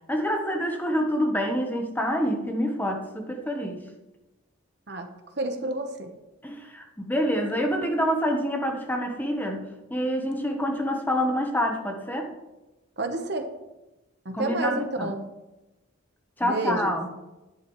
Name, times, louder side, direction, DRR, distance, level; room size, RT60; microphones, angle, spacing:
voice 1, 0.1-3.9 6.4-12.3 14.3-15.1 16.4-17.1, equal, 10° left, 3 dB, 1.0 m, -27 dB
voice 2, 5.4-6.1 13.0-13.5 14.2-15.2 16.4-16.9, right 2 dB, 50° right, 5 dB, 1.1 m, -29 dB
11.0 x 10.5 x 3.2 m, 1.0 s
head